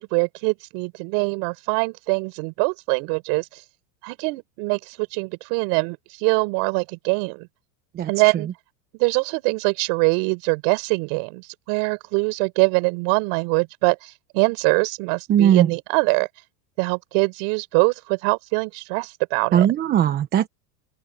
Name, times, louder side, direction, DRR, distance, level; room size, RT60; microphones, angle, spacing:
voice 1, 0.0-3.6 4.0-7.5 8.1-8.5 8.9-16.3 16.8-19.7, right 34 dB, 50° right, 6.8 m, -23 dB
voice 2, 7.9-8.3 15.3-15.7 19.5-20.5, right 10 dB, 20° right, 1.0 m, -19 dB
open air
supercardioid pair, 155°, 46 cm